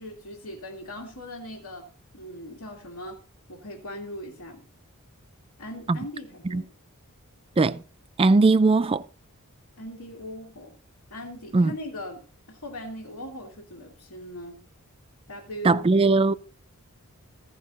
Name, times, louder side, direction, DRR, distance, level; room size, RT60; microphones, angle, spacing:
voice 1, 0.0-3.2 3.5-4.7 5.6-6.7 9.8-10.7 11.1-14.7 15.3-15.8, left 1 dB, 80° left, 2.1 m, -39 dB
voice 2, 8.2-9.0 11.5-11.7 15.6-16.3, right 3 dB, 25° right, 0.4 m, -19 dB
16.0 x 5.5 x 4.0 m
head